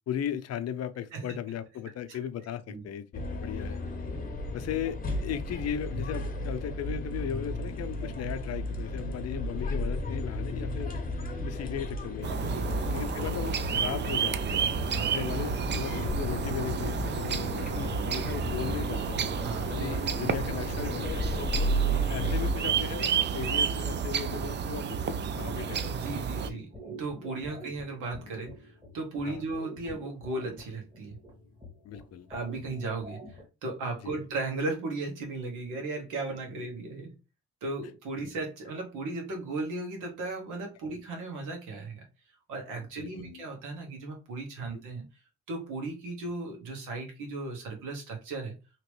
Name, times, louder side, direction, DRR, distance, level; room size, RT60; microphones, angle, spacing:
voice 1, 0.1-3.8 4.5-11.0 11.4-12.3 12.9-14.7 15.0-19.2 19.7-21.5 21.9-26.0 26.5-26.6 27.5-27.6 29.2-29.5 31.8-32.3 34.0-34.2 43.0-43.4 44.7-44.8, left 9 dB, 55° left, 0.5 m, -37 dB
sound 1, 3.1-22.5, left 1 dB, 30° left, 0.8 m, -33 dB
sound 2, 12.2-26.5, right 7 dB, 40° right, 0.4 m, -31 dB
voice 2, 14.8-15.2 19.4-20.0 22.0-22.2 25.9-31.2 32.3-37.1 37.6-42.1 42.5-45.0 45.5-48.5, right 3 dB, 85° right, 1.4 m, -36 dB
sound 3, 25.3-33.4, equal, 15° right, 1.5 m, -47 dB
2.9 x 2.9 x 3.0 m
cardioid pair, 90°, 30 cm